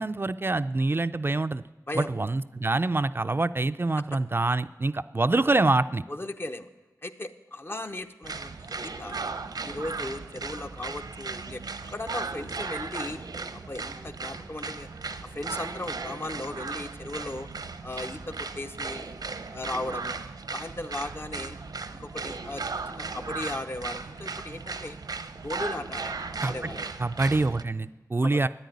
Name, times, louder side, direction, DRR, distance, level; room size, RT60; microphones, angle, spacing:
voice 1, 0.0-1.6 2.0-6.0 26.4-26.5 27.0-28.5, right 2 dB, 35° right, 11 dB, 0.4 m, -25 dB
voice 2, 6.1-6.7 7.0-9.3 9.6-13.2 13.5-14.9 15.2-17.5 17.8-19.1 19.5-20.2 20.5-21.6 21.9-25.0 25.4-26.9 28.2-28.4, left 2 dB, 35° left, 7 dB, 0.8 m, -37 dB
sound 1, 8.2-27.6, right 4 dB, 90° right, 0.8 m, -36 dB
13.0 x 9.9 x 9.4 m, 1.2 s
wide cardioid pair, 80°, 7 cm